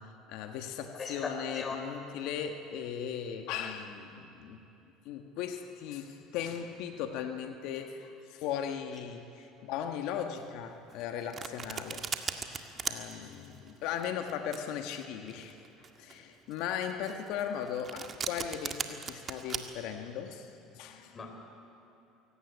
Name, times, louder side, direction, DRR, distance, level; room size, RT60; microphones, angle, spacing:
voice 1, 0.0-4.6 5.0-12.4 12.7-21.2, left 8 dB, 70° left, 6 dB, 1.5 m, -38 dB
voice 2, 0.9-1.8 21.1-21.3, left 4 dB, 30° left, 3 dB, 4.3 m, -38 dB
Domestic sounds home sounds, 10.9-19.6, right 6 dB, 35° right, 1.8 m, -38 dB
23.0 x 17.0 x 9.8 m, 2.8 s
supercardioid pair, 90°, 0 cm